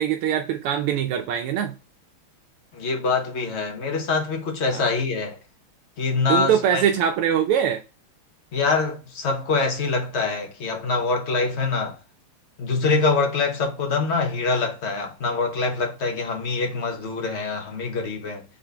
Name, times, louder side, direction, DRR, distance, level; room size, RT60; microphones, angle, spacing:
voice 1, 0.0-1.7 4.7-4.8 6.3-7.8, right 9 dB, 85° right, 1.5 m, -22 dB
voice 2, 2.7-5.4 6.0-6.8 8.5-12.0 12.6-18.4, left 4 dB, 40° left, 1.0 m, -24 dB
4.1 x 3.9 x 3.3 m
omnidirectional pair, 2.4 m